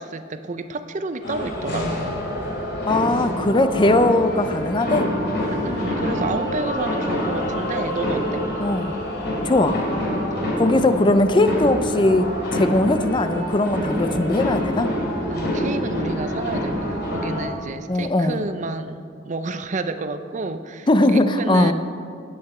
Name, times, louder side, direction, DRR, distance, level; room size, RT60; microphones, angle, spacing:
voice 1, 0.0-2.0 5.4-8.4 10.6-11.2 15.3-21.7, right 3 dB, 40° right, 10 dB, 0.5 m, -30 dB
sound 1, 1.2-17.4, left 1 dB, 60° left, 2.9 m, -26 dB
voice 2, 2.9-5.1 8.6-8.9 9.4-9.8 10.6-14.9 17.9-18.4 20.9-21.7, left 2 dB, 25° left, 10 dB, 0.5 m, -19 dB
17.5 x 8.0 x 4.3 m, 2.3 s
head